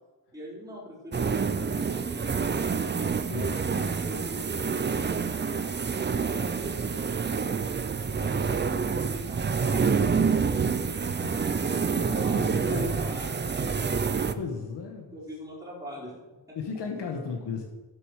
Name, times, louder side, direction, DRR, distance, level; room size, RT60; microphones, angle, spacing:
voice 1, 0.3-3.3 3.7-7.4 8.0-11.5 12.1-14.6 15.1-16.1 16.5-16.6, equal, 10° right, -8 dB, 4.3 m, -42 dB
sound 1, 1.1-14.3, right 5 dB, 25° right, 0.4 m, -27 dB
voice 2, 3.2-3.9 11.0-11.1 11.8-12.9 14.4-15.2 16.5-17.6, left 5 dB, 75° left, 2 dB, 1.4 m, -35 dB
10.5 x 7.0 x 6.4 m, 1.2 s
wide cardioid pair, 160°, 41 cm